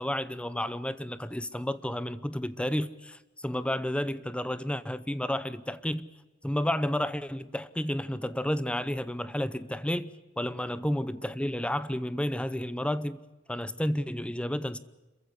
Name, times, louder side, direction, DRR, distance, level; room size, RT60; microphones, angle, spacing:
voice 1, 0.0-6.1 6.4-13.2 13.5-14.8, left 1 dB, 5° left, 0.8 m, -31 dB
26.5 x 15.0 x 9.7 m
head